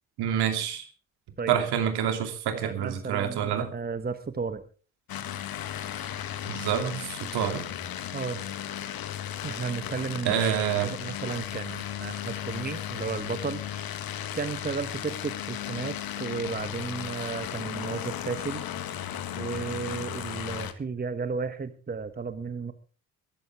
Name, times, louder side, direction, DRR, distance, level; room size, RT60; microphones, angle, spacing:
voice 1, 0.2-0.9 1.5-3.7 6.5-7.6 10.2-10.9, right 9 dB, 60° right, 7 dB, 2.9 m, -27 dB
voice 2, 2.6-4.6 8.1-8.4 9.4-10.4 10.8-13.9 14.3-18.6 19.4-22.7, right 5 dB, 20° right, 12 dB, 1.3 m, -33 dB
sound 1, 5.1-20.7, left 10 dB, 50° left, 1.7 m, -35 dB
20.5 x 13.5 x 3.6 m, 0.36 s
hypercardioid pair, 55°, 44 cm